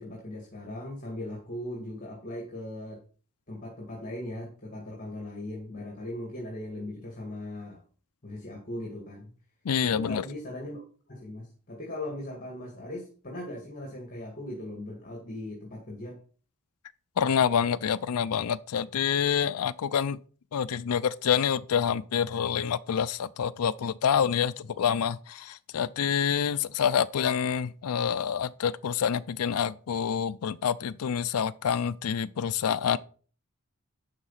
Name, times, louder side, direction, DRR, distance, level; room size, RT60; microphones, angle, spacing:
voice 1, 0.0-3.0 3.5-7.8 8.2-9.3 9.8-16.2, left 1 dB, 35° left, 2.0 m, -39 dB
voice 2, 9.6-10.2 17.2-20.2 20.5-33.0, left 7 dB, 75° left, 0.4 m, -27 dB
11.0 x 4.1 x 5.6 m
head